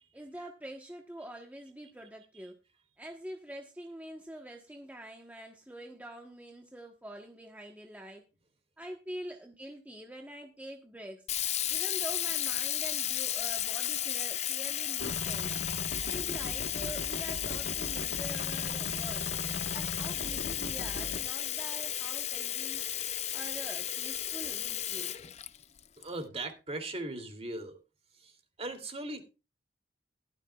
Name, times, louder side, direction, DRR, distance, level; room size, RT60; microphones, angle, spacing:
voice 1, 0.1-2.5 3.0-8.2 8.8-11.3 11.7-15.5 16.1-19.2 19.7-22.8 23.3-25.1, right 1 dB, 10° right, 1.2 m, -45 dB
Sink (filling or washing), 11.3-26.0, left 11 dB, 40° left, 0.6 m, -34 dB
sound 1, 15.0-21.2, left 2 dB, 75° left, 1.5 m, -39 dB
voice 2, 26.0-27.8 28.2-28.3 28.6-29.3, right 2 dB, 35° right, 2.9 m, -39 dB
16.5 x 13.0 x 2.4 m
head